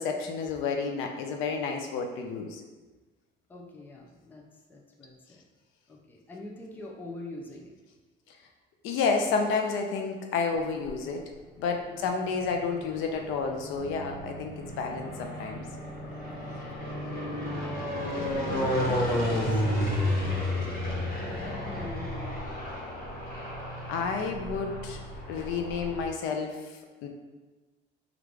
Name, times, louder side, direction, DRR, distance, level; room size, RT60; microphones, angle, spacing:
voice 1, 0.0-2.6 8.8-11.2 11.6-15.7 23.9-25.0 25.3-27.1, left 5 dB, 85° left, 3 dB, 0.6 m, -30 dB
voice 2, 3.5-4.4 4.7-5.4 5.9-7.7 11.8-12.0 16.5-16.9 17.3-20.8 21.4-22.6, left 2 dB, 10° left, -1 dB, 0.3 m, -44 dB
sound 1, 10.5-11.3 12.0-26.1, left 1 dB, 45° left, 1.1 m, -32 dB
sound 2, 13.8-20.0, right 6 dB, 75° right, 0.8 m, -51 dB
4.9 x 2.4 x 3.3 m, 1.3 s
cardioid pair, 175°, 20 cm